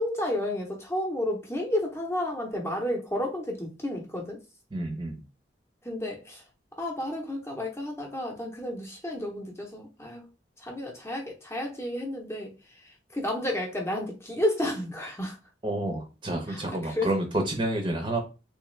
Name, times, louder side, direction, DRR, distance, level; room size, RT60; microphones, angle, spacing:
voice 1, 0.0-4.4 5.8-6.4 6.8-10.3 10.6-12.5 13.1-15.4 16.5-17.1, left 1 dB, 15° left, 0 dB, 0.8 m, -31 dB
voice 2, 4.7-5.2 15.6-18.2, right 1 dB, 25° right, 3 dB, 0.7 m, -29 dB
3.4 x 3.1 x 3.2 m, 0.30 s
head